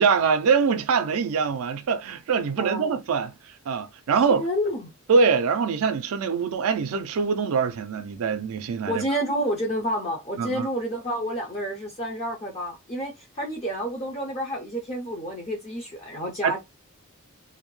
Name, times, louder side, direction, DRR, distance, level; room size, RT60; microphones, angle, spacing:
voice 1, 0.0-3.3 3.7-4.5 5.1-9.0 10.4-10.7 16.4-16.6, right 5 dB, 75° right, 0.4 m, -23 dB
voice 2, 4.3-4.9 8.9-16.6, equal, 30° left, 0.4 m, -29 dB
2.6 x 2.1 x 3.0 m
head